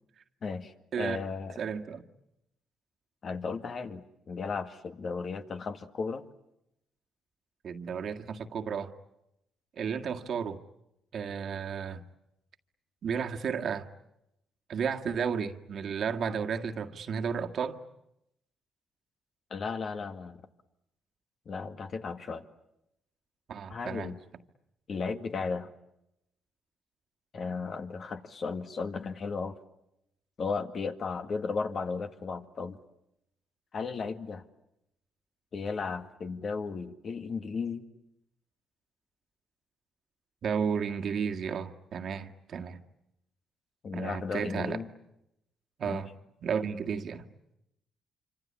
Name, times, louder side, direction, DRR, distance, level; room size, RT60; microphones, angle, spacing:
voice 1, 0.4-1.6 3.2-6.3 19.5-20.4 21.5-22.4 23.7-24.2 24.9-25.7 27.3-29.6 30.4-32.8 33.7-34.4 35.5-37.9 43.8-44.9 45.8-46.0, left 4 dB, 50° left, 7 dB, 2.0 m, -35 dB
voice 2, 1.6-2.0 7.6-8.9 9.8-10.6 11.1-12.0 13.0-13.9 14.7-17.8 23.5-24.1 40.4-42.8 43.9-44.8 45.8-46.1 46.4-47.2, right 6 dB, 60° right, 5 dB, 1.8 m, -33 dB
26.5 x 26.0 x 8.7 m, 0.83 s
cardioid pair, 90°, 0 cm